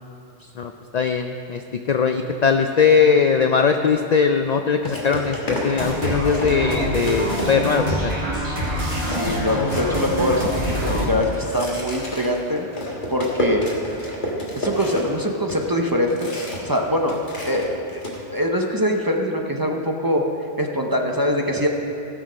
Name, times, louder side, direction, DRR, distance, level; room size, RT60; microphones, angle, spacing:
voice 1, 0.6-1.6 1.9-8.2, left 6 dB, 65° left, 6 dB, 0.4 m, -20 dB
sound 1, 3.9-4.0 4.8-7.8 8.3-8.4 8.6-16.8 17.0-18.2, equal, 45° left, 1.7 m, -31 dB
sound 2, 5.7-11.1, equal, 60° right, 3.2 m, -25 dB
voice 2, 9.1-12.7 13.1-13.6 14.6-16.3 16.6-17.1 17.4-17.7 18.3-20.2 20.6-21.7, equal, 20° right, 1 dB, 0.7 m, -23 dB
16.5 x 6.3 x 5.1 m, 2.7 s
omnidirectional pair, 1.2 m